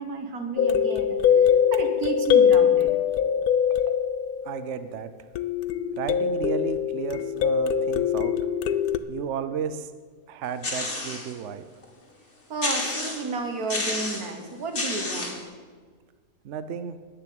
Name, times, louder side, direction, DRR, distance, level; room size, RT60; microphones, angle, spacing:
voice 1, 0.0-2.9 12.5-15.4, right 3 dB, 85° right, 6 dB, 1.8 m, -32 dB
sound 1, 0.6-4.8 5.4-9.0, left 8 dB, 85° left, 1.1 m, -22 dB
voice 2, 4.4-5.1 5.9-8.3 9.1-9.9 10.3-11.7 16.4-17.0, right 7 dB, 60° right, 12 dB, 0.9 m, -33 dB
sound 2, 10.6-11.3 11.8-11.9 12.6-13.3 13.7-14.3 14.7-15.4, left 2 dB, 50° left, 2.4 m, -30 dB
10.5 x 9.0 x 7.7 m, 1.5 s
omnidirectional pair, 1.5 m